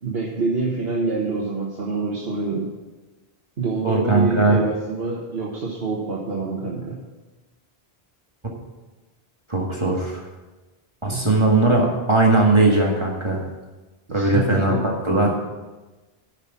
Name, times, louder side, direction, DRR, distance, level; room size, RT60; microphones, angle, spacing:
voice 1, 0.0-2.7 3.6-7.0 11.1-11.3 14.1-14.8, right 4 dB, 70° right, -3 dB, 1.6 m, -26 dB
voice 2, 3.8-4.6 9.5-10.1 11.0-13.4 14.1-14.7 15.0-15.3, right 2 dB, 30° right, -2 dB, 1.8 m, -19 dB
9.9 x 6.0 x 8.2 m, 1.2 s
omnidirectional pair, 1.0 m